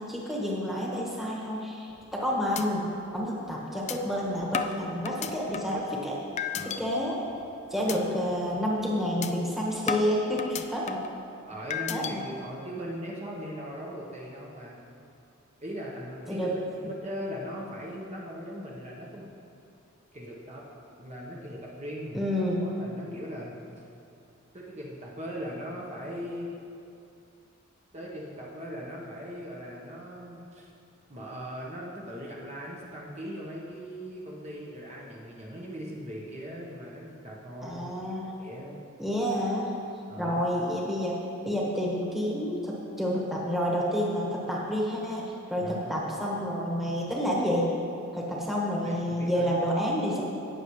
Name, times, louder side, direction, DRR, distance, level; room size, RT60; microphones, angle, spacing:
voice 1, 0.0-1.9 2.2-2.9 3.1-6.1 6.6-7.2 7.7-11.0 11.9-12.2 16.3-16.5 22.1-22.7 37.6-38.3 39.0-39.7 40.2-41.2 41.4-47.7 48.1-50.2, equal, ahead, -4 dB, 1.5 m, -29 dB
sound 1, 1.9-2.2 2.6-2.7 3.1-3.2 3.9-4.0 4.5-5.8 6.4-6.8 7.2-7.5 7.9-8.0 8.4-8.6 9.2-9.3 9.9-11.1 11.7-12.1, left 7 dB, 30° left, 0.4 m, -33 dB
voice 2, 6.5-6.9 11.5-14.8 15.6-16.5 16.8-19.3 20.1-20.6 21.0-22.2 22.6-23.8 24.5-26.5 27.9-30.7 31.1-37.9 38.4-38.8 40.1-40.4 45.6-45.9 48.8-49.5, equal, 30° right, -4 dB, 1.2 m, -39 dB
18.0 x 6.9 x 3.2 m, 2.6 s
head